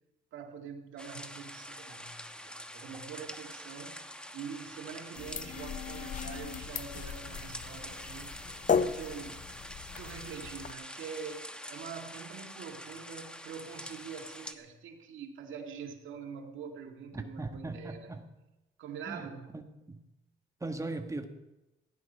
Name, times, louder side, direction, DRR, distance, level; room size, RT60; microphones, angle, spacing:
voice 1, 0.3-8.4 8.7-9.5 9.9-18.1 18.8-19.6, right 6 dB, 80° right, 3 dB, 2.2 m, -45 dB
sound 1, 1.0-14.5, equal, 5° left, 1.1 m, -46 dB
sound 2, 5.1-10.7, left 6 dB, 40° left, 0.7 m, -36 dB
voice 2, 17.1-18.3 19.1-19.3 19.9-20.0 20.6-21.3, right 2 dB, 15° right, 5 dB, 1.7 m, -38 dB
15.5 x 11.0 x 5.6 m, 0.99 s
cardioid pair, 90°, 20 cm